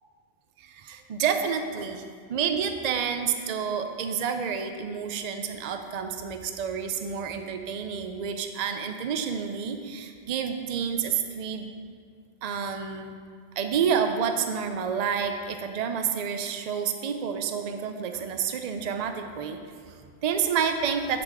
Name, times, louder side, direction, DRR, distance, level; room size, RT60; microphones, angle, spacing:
voice 1, 0.6-2.0 2.3-11.7 12.4-13.1 13.6-21.2, right 7 dB, 50° right, 6 dB, 0.5 m, -29 dB
9.5 x 4.0 x 4.8 m, 2.1 s
omnidirectional pair, 1.1 m